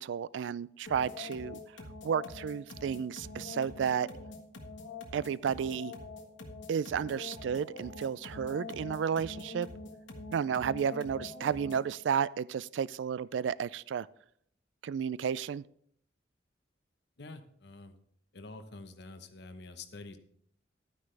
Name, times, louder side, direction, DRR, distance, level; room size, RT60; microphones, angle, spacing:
voice 1, 0.0-1.6 2.0-4.1 5.1-5.9 6.7-9.7 10.3-14.1 14.8-15.6, right 7 dB, 85° right, 20 dB, 0.3 m, -32 dB
sound 1, 0.9-11.9, left 3 dB, 90° left, 1.5 m, -45 dB
voice 2, 17.2-17.9 18.3-20.2, left 3 dB, 65° left, 8 dB, 1.0 m, -47 dB
12.0 x 9.5 x 3.3 m, 0.69 s
head